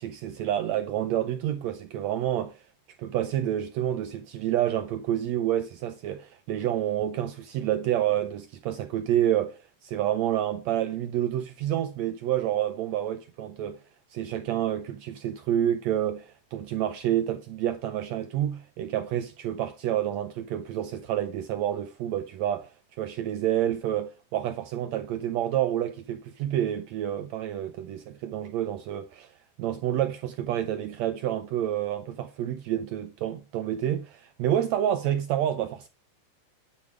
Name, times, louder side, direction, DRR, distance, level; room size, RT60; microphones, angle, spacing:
voice 1, 0.0-2.6 3.0-13.8 14.1-22.7 23.0-35.9, right 11 dB, 85° right, 1.6 m, -28 dB
10.5 x 5.1 x 4.6 m
omnidirectional pair, 3.7 m